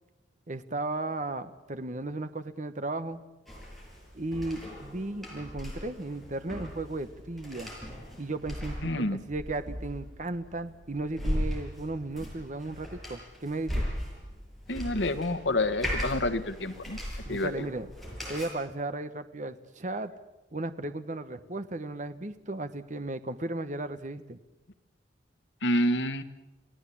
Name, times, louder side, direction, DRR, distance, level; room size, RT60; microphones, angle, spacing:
voice 1, 0.5-3.2 4.1-7.7 8.2-13.9 17.3-17.9 18.3-20.1 20.5-24.4, right 2 dB, 45° right, 11 dB, 1.1 m, -35 dB
sound 1, 3.5-18.5, equal, ahead, 7.6 m, -38 dB
voice 2, 8.8-9.2 14.7-17.0 17.3-17.5 25.6-26.2, left 1 dB, 85° left, 10 dB, 1.6 m, -28 dB
28.0 x 17.5 x 8.6 m, 1.0 s
head